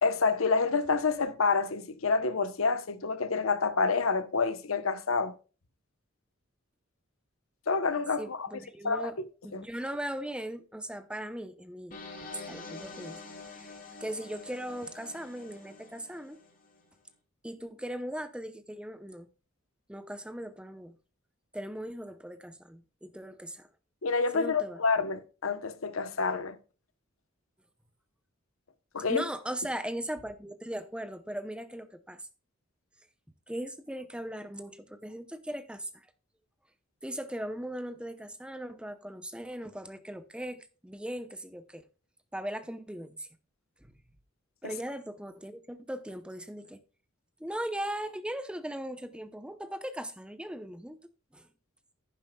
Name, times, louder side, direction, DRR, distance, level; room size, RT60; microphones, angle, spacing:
voice 1, 0.0-5.3 7.7-8.5 8.8-9.1 9.5-9.6 24.0-26.6 28.9-29.2 44.6-44.7, left 4 dB, 90° left, 0.9 m, -28 dB
voice 2, 8.2-9.2 9.4-12.0 12.5-13.2 13.5-13.7 14.0-16.4 17.4-19.3 19.9-21.0 21.5-23.7 24.3-24.8 29.1-32.3 33.5-36.1 37.0-41.8 42.3-43.3 43.8-43.9 44.6-46.8 47.4-51.0 51.3-51.5, right 1 dB, 5° right, 0.8 m, -38 dB
sound 1, 11.9-16.8, left 3 dB, 40° left, 2.5 m, -46 dB
11.0 x 9.9 x 2.3 m
head